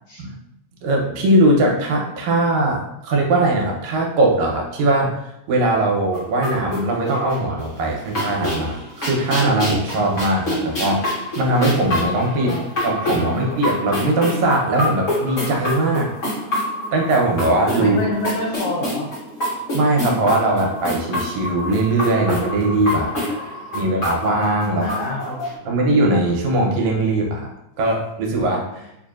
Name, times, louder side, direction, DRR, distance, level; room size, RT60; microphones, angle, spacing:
voice 1, 0.8-5.2 5.5-11.1 11.4-12.5 12.8-16.1 16.9-18.0 19.7-23.1 23.7-25.0 25.7-27.5 27.8-28.9, right 2 dB, 85° right, 0 dB, 1.9 m, -20 dB
sound 1, 6.1-7.6 7.9-25.5, left 1 dB, 65° left, 0.8 m, -27 dB
voice 2, 13.1-13.6 17.8-19.1 23.0-24.0 24.8-25.8, left 1 dB, 85° left, -2 dB, 1.4 m, -29 dB
4.8 x 2.6 x 2.4 m, 0.84 s
omnidirectional pair, 3.4 m